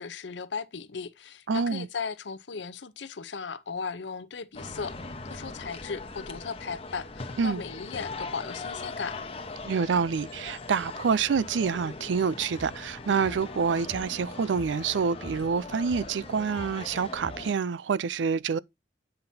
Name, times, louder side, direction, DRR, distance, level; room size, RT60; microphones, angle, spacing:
voice 1, 0.0-5.0 5.2-9.2, left 5 dB, 80° left, 0.7 m, -36 dB
voice 2, 1.5-1.9 7.4-7.6 9.6-18.6, right 5 dB, 90° right, 0.4 m, -27 dB
sound 1, 4.5-17.5, left 3 dB, 30° left, 0.9 m, -40 dB
sound 2, 12.6-17.5, right 1 dB, 10° right, 2.1 m, -46 dB
8.7 x 5.8 x 2.7 m
head